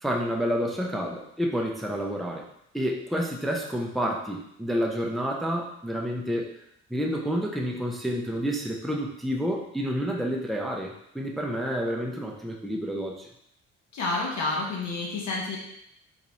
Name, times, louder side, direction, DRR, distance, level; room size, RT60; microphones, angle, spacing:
voice 1, 0.0-2.4 2.7-6.5 6.9-13.3, equal, ahead, -1 dB, 0.5 m, -29 dB
voice 2, 13.9-15.6, left 3 dB, 65° left, -3 dB, 1.2 m, -29 dB
4.0 x 2.3 x 3.0 m, 0.75 s
cardioid pair, 90°, 30 cm